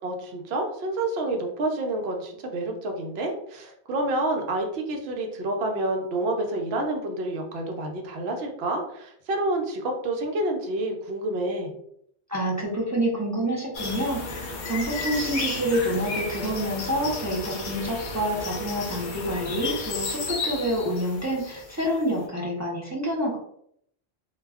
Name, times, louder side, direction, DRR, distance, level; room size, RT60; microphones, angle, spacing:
voice 1, 0.0-11.7, right 2 dB, 70° right, 2 dB, 0.8 m, -28 dB
voice 2, 12.3-23.4, equal, 25° right, -4 dB, 0.4 m, -27 dB
sound 1, 13.7-22.0, left 3 dB, 55° left, 0.5 m, -33 dB
2.2 x 2.2 x 3.3 m, 0.69 s
omnidirectional pair, 1.1 m